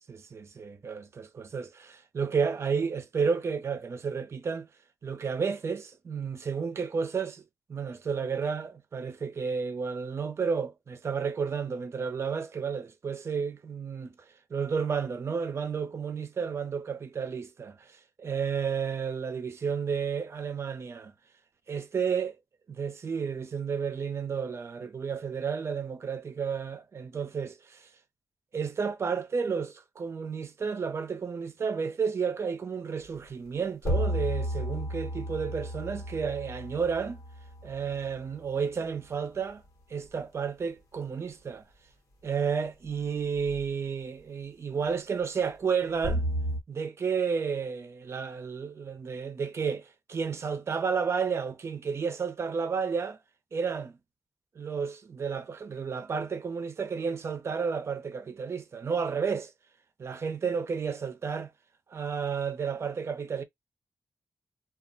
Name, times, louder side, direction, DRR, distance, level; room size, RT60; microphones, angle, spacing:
voice 1, 0.0-4.7 5.0-7.4 7.7-14.1 14.5-21.1 21.7-22.3 22.7-27.9 28.5-37.2 37.6-39.6 39.9-41.6 42.2-46.3 46.7-53.2 53.5-54.0 54.6-59.5 60.0-61.5 61.9-63.4, right 6 dB, 50° right, 0.5 m, -32 dB
sound 1, 33.1-33.2 33.8-38.3 43.4-43.6 46.0-46.6, equal, 75° left, 1.1 m, -32 dB
2.3 x 2.1 x 3.7 m
wide cardioid pair, 135°, 6 cm